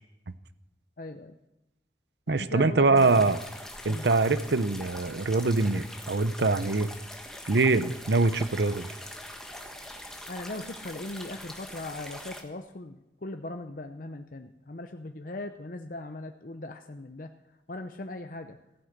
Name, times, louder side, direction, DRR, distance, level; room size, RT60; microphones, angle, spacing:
voice 1, 1.0-1.4 2.3-3.3 3.8-4.0 10.3-17.3 17.7-18.6, left 2 dB, 45° left, 6 dB, 0.7 m, -39 dB
voice 2, 2.3-3.4 3.8-6.9 7.5-8.9, right 3 dB, 65° right, 14 dB, 0.7 m, -24 dB
sound 1, 3.0-12.4, left 1 dB, 5° left, 1.3 m, -43 dB
15.0 x 9.7 x 6.6 m, 0.98 s
head